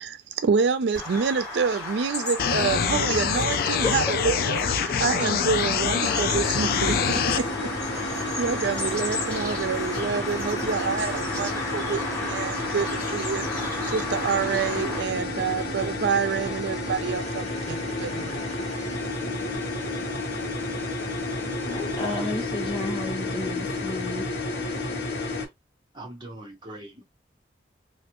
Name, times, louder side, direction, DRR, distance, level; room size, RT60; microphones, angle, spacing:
voice 1, 0.0-18.5, right 5 dB, 80° right, 0.4 m, -28 dB
Bird vocalization bird call bird song, 0.9-15.0, left 2 dB, 10° left, 1.9 m, -34 dB
sound 1, 2.4-7.4, left 7 dB, 55° left, 0.3 m, -25 dB
voice 2, 3.3-3.9 20.4-20.5 21.6-24.3, left 2 dB, 30° left, 1.1 m, -32 dB
sound 2, 6.3-25.5, left 2 dB, 75° left, 1.0 m, -31 dB
voice 3, 25.9-27.1, right 1 dB, 25° right, 0.9 m, -41 dB
3.2 x 2.5 x 2.9 m
head